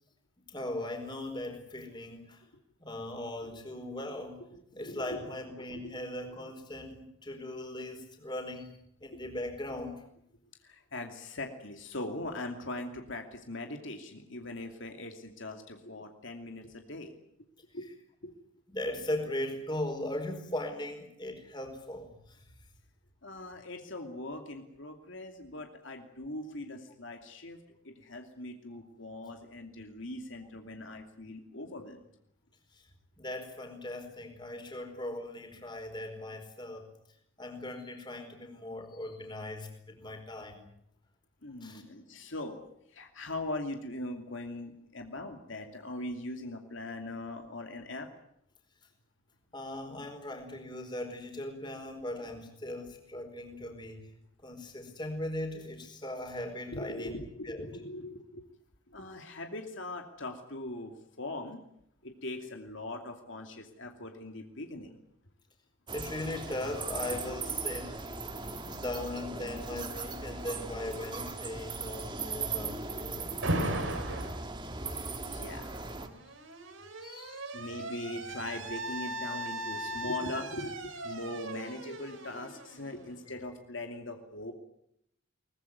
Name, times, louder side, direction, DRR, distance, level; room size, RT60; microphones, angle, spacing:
voice 1, 0.5-2.4 2.8-4.4 4.7-10.0 18.7-22.5 32.7-32.9 33.2-36.9 37.4-40.7 41.6-41.8 49.5-54.0 54.4-57.2 57.4-57.7 65.9-68.0 68.6-73.3 77.0-77.4 83.3-83.4, left 1 dB, 20° left, 4 dB, 4.7 m, -39 dB
voice 2, 4.5-5.3 5.8-5.9 10.6-17.1 17.7-17.9 18.2-18.3 23.2-27.6 27.8-32.0 41.4-42.6 42.9-48.1 56.7-58.4 58.9-61.6 62.0-65.0 68.7-68.8 74.2-74.3 75.3-75.8 77.5-84.5, left 2 dB, 65° left, 4 dB, 2.7 m, -41 dB
sound 1, 65.9-76.1, right 3 dB, 20° right, 1.9 m, -38 dB
Alarm, 73.4-74.4 75.6-83.3, right 1 dB, 75° right, 4.8 m, -38 dB
23.0 x 20.5 x 9.5 m, 0.73 s
head